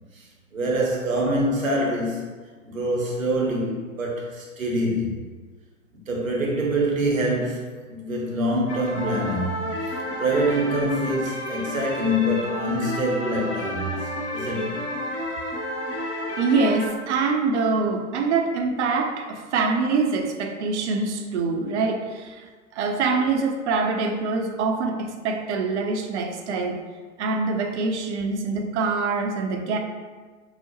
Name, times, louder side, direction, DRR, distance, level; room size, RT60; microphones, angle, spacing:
voice 1, 0.1-2.2 2.7-5.2 6.1-14.8, right 1 dB, 85° right, -2 dB, 0.9 m, -25 dB
sound 1, 8.7-16.9, left 1 dB, 35° left, 0.8 m, -31 dB
voice 2, 16.4-26.8 27.2-29.8, right 4 dB, 60° right, 3 dB, 0.5 m, -24 dB
4.7 x 2.0 x 2.9 m, 1.4 s
figure-of-eight pair, 95°, 39 cm